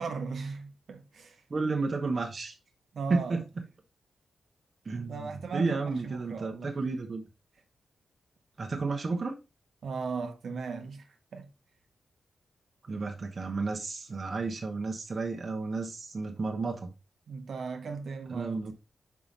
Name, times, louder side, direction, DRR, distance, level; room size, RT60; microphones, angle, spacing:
voice 1, 0.0-1.4 2.9-3.4 4.9-6.7 9.8-11.1 11.3-11.5 17.3-18.6, right 5 dB, 60° right, 0.9 m, -37 dB
voice 2, 1.5-2.5 3.1-3.4 4.8-7.2 8.6-9.3 12.9-16.9 18.3-18.7, right 3 dB, 35° right, 1.0 m, -32 dB
5.7 x 4.7 x 3.9 m
wide cardioid pair, 175°, 0 cm